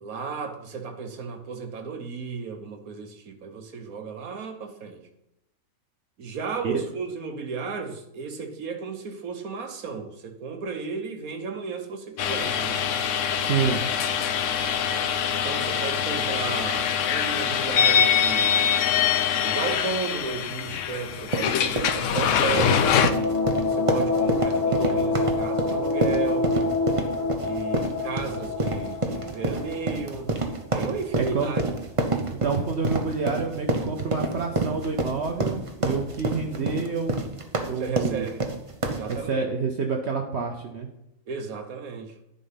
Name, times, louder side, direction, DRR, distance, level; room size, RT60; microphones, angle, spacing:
voice 1, 0.0-5.0 6.2-12.9 15.3-18.6 19.4-23.0 23.6-26.5 27.4-30.3 30.7-31.8 37.7-38.4 38.8-39.5 41.3-42.1, right 5 dB, 80° right, 6 dB, 1.5 m, -34 dB
sound 1, 12.2-23.1, left 8 dB, 65° left, 1.0 m, -24 dB
voice 2, 13.4-13.8 31.2-31.5 32.4-37.2 37.6-38.3 39.1-40.9, right 5 dB, 55° right, 2 dB, 1.0 m, -28 dB
sound 2, 21.1-39.2, right 2 dB, 25° right, 0.8 m, -28 dB
sound 3, 22.2-30.8, left 3 dB, 20° left, 0.7 m, -27 dB
10.5 x 5.3 x 5.7 m, 0.84 s
omnidirectional pair, 1.5 m